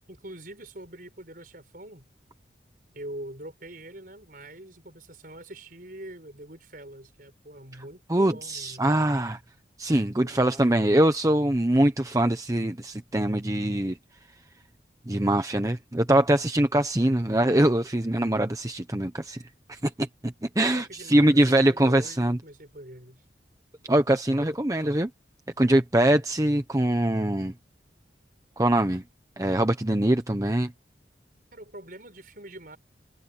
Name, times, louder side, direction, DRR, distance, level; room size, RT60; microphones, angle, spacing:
voice 1, 0.1-2.1 2.9-8.9 10.2-10.8 20.7-23.2 31.5-32.8, right 1 dB, 50° right, 6.7 m, -44 dB
voice 2, 8.1-9.4 9.8-14.0 15.1-19.4 19.7-22.4 23.8-25.1 25.6-27.5 28.6-29.0 29.4-30.7, right 1 dB, 20° right, 0.9 m, -23 dB
head